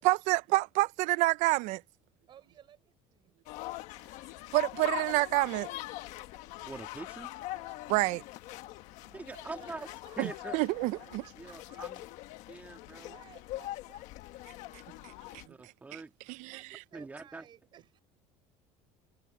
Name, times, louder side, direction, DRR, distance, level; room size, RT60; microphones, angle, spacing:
voice 1, 0.0-1.8 4.5-5.7 7.9-8.2 10.2-11.2 15.0-16.0 16.3-16.5, right 21 dB, 65° right, 0.6 m, -28 dB
voice 2, 2.3-3.4 9.0-10.6 10.9-12.2 12.9-14.6 16.5-18.0, right 10 dB, 35° right, 6.6 m, -58 dB
sound 1, 3.5-15.5, left 17 dB, 60° left, 1.4 m, -43 dB
voice 3, 6.7-7.3 9.1-9.9 10.2-10.6 11.4-12.0 12.5-13.2 15.5-16.1 16.9-17.4, right 3 dB, 10° right, 1.9 m, -44 dB
cardioid pair, 165°, 14 cm